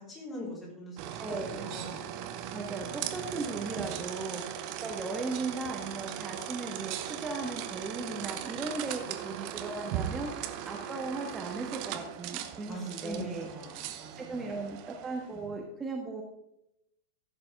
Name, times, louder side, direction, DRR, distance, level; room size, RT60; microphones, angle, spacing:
voice 1, 0.0-2.0 12.6-14.4, equal, 20° left, -4 dB, 4.3 m, -42 dB
sound 1, 1.0-15.4, right 10 dB, 45° right, 0.9 m, -39 dB
voice 2, 1.2-1.7 2.5-13.5 13.7-16.2, right 3 dB, 15° right, 0 dB, 1.4 m, -37 dB
15.5 x 6.8 x 3.7 m, 0.83 s
figure-of-eight pair, 90°, 0 cm